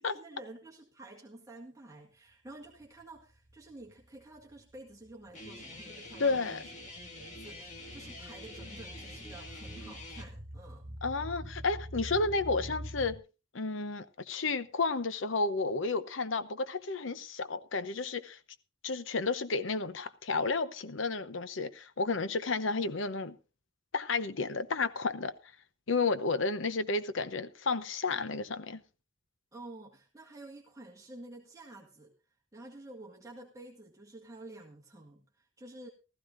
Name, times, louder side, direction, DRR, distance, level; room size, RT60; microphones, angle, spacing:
voice 1, 0.0-6.7 7.1-10.9 29.5-32.1 32.5-35.9, right 2 dB, 15° right, 1.8 m, -50 dB
sound 1, 2.7-3.6 3.8-13.2, equal, 40° right, 1.7 m, -46 dB
Guitar, 5.3-10.2, left 2 dB, 35° left, 1.9 m, -47 dB
voice 2, 6.2-6.6 11.0-13.2 13.5-18.4 18.8-23.4 23.9-25.3 25.9-28.8, left 3 dB, 65° left, 0.8 m, -32 dB
15.5 x 14.5 x 2.6 m
head